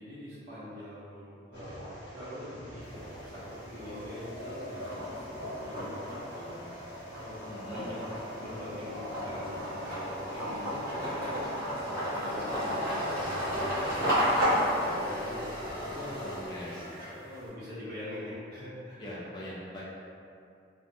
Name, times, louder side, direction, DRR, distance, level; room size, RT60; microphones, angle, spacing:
voice 1, 0.0-6.8 7.1-8.0 8.3-11.4 11.8-16.2 17.0-19.0, equal, 55° right, -11 dB, 1.0 m, -44 dB
sound 1, 1.5-12.2, equal, 80° left, 0.7 m, -50 dB
sound 2, 2.8-3.5 3.9-17.4, equal, 15° right, 0.8 m, -33 dB
voice 2, 7.5-7.8 16.2-17.1 19.0-19.8, equal, 25° left, -7 dB, 0.3 m, -42 dB
2.5 x 2.1 x 2.6 m, 2.4 s
head